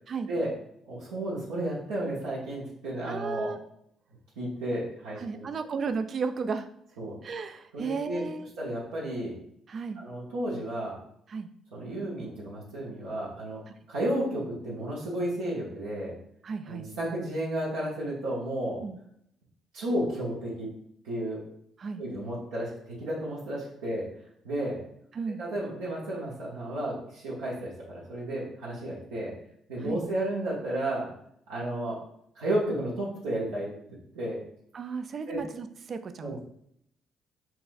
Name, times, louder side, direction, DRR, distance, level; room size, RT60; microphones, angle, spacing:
voice 1, 0.8-3.5 4.4-5.5 7.0-7.2 7.7-8.2 8.6-9.4 10.0-11.0 11.7-13.6 13.9-16.1 16.7-18.8 19.7-20.7 21.0-21.4 22.0-24.1 24.4-24.8 25.4-29.3 29.7-31.1 31.5-32.0 32.3-34.4 35.3-35.4 36.2-36.4, right 1 dB, 85° right, -7 dB, 0.9 m, -32 dB
voice 2, 3.1-3.6 5.2-6.7 7.2-8.5 9.7-10.0 11.3-11.5 16.4-16.9 18.8-19.0 21.8-22.0 25.1-25.4 29.8-30.0 34.7-36.4, right 5 dB, 50° right, 9 dB, 0.4 m, -34 dB
5.8 x 2.4 x 2.5 m, 0.72 s
hypercardioid pair, 50°, 0 cm